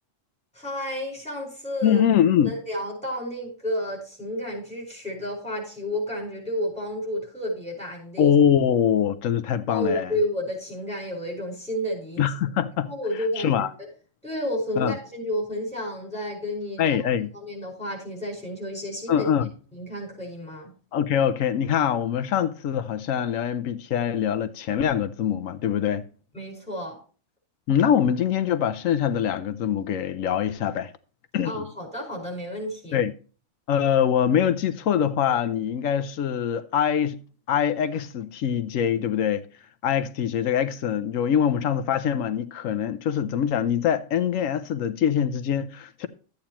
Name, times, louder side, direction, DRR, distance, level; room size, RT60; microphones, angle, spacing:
voice 1, 0.5-2.0 2.4-8.3 9.7-12.2 12.9-13.9 14.2-17.0 17.3-19.3 19.7-20.7 26.3-27.0 31.4-33.0, left 1 dB, 5° left, 4.8 m, -31 dB
voice 2, 1.8-2.5 8.2-10.1 12.2-12.9 13.4-13.7 14.8-15.0 16.8-17.3 19.1-19.5 20.9-26.0 27.7-30.9 31.3-31.7 32.9-33.1 33.7-37.2 37.5-39.4 39.8-46.1, left 9 dB, 90° left, 1.1 m, -23 dB
13.0 x 8.7 x 3.0 m
omnidirectional pair, 1.3 m